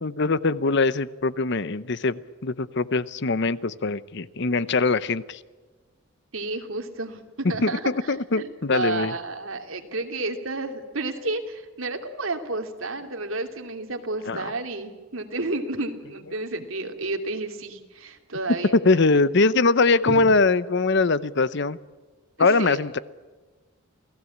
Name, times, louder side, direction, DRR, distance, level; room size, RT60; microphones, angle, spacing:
voice 1, 0.0-5.4 7.6-9.1 14.3-14.4 18.8-21.8 22.4-23.0, left 3 dB, 55° left, 16 dB, 0.8 m, -22 dB
voice 2, 6.3-18.8 20.1-20.2 22.4-22.8, right 2 dB, 75° right, 5 dB, 2.9 m, -31 dB
28.5 x 17.5 x 8.6 m, 1.3 s
head